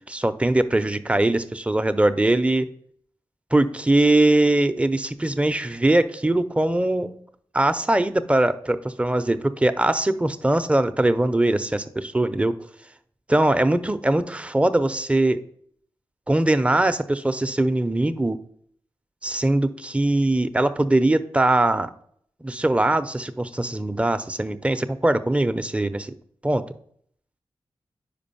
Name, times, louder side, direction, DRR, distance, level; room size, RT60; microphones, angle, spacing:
voice 1, 0.1-2.7 3.5-7.1 7.5-12.6 13.3-15.4 16.3-18.4 19.2-21.9 22.4-26.1 26.4-26.7, right 1 dB, 10° right, 10 dB, 0.5 m, -21 dB
5.2 x 4.9 x 5.5 m, 0.64 s
cardioid pair, 45°, 10 cm